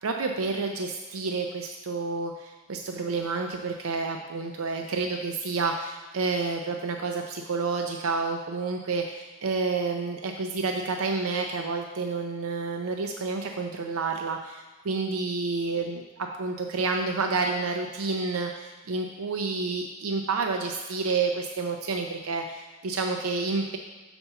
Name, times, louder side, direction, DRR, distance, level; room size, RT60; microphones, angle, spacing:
voice 1, 0.0-23.8, right 4 dB, 90° right, 3 dB, 0.5 m, -29 dB
6.8 x 4.3 x 5.6 m, 1.3 s
head